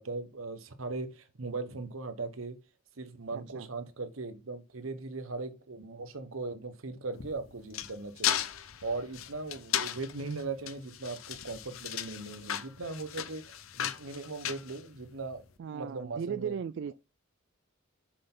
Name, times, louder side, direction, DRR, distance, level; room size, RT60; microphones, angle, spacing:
voice 1, 0.0-2.6 3.0-8.4 8.8-15.4 15.7-16.5, right 3 dB, 85° right, 1.1 m, -39 dB
voice 2, 3.3-3.7 15.6-16.9, right 7 dB, 60° right, 0.3 m, -36 dB
sound 1, 7.1-15.4, left 10 dB, 90° left, 0.7 m, -36 dB
6.5 x 5.8 x 3.9 m
head